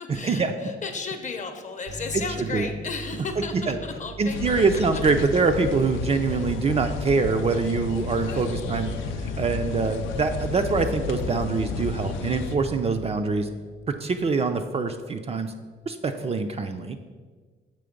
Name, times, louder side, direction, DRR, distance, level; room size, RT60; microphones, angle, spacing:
voice 1, 0.0-5.0 6.3-6.6 8.1-8.4 9.6-9.8 12.8-12.9 15.9-16.1, left 4 dB, 40° left, 6 dB, 0.7 m, -35 dB
sound 1, 1.9-15.0, right 3 dB, 85° right, 0.9 m, -41 dB
voice 2, 4.2-9.0 9.2-13.5 13.9-15.5 15.9-17.0, right 4 dB, 30° right, 6 dB, 0.4 m, -24 dB
sound 2, 4.3-12.6, left 5 dB, 80° left, 0.4 m, -32 dB
6.9 x 3.0 x 5.1 m, 1.4 s
cardioid pair, 90°, 20 cm